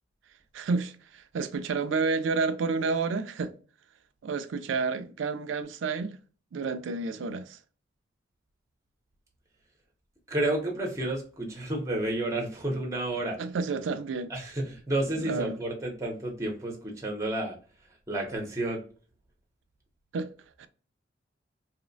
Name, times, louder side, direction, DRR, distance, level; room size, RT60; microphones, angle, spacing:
voice 1, 0.5-3.5 4.2-6.2 6.5-7.6 13.4-14.3 15.2-15.6 20.1-20.3 20.6-20.7, right 4 dB, 80° right, 0.4 m, -30 dB
voice 2, 10.3-13.4 14.3-17.6 18.1-18.8, right 1 dB, 15° right, 0.6 m, -31 dB
2.8 x 2.1 x 2.5 m
head